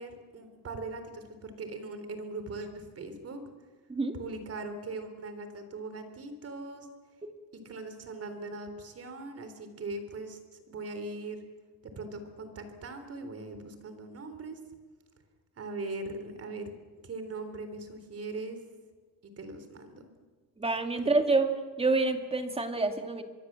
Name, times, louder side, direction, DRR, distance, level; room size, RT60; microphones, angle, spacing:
voice 1, 0.0-3.4 4.1-6.9 7.6-10.4 10.7-11.4 12.0-14.6 15.6-16.7 17.0-18.6 19.2-20.1 21.0-21.2, right 3 dB, 35° right, 9 dB, 3.7 m, -40 dB
voice 2, 20.6-21.5 21.8-23.2, right 3 dB, 15° right, 6 dB, 2.1 m, -27 dB
25.5 x 22.5 x 7.5 m, 1.5 s
cardioid pair, 140°, 42 cm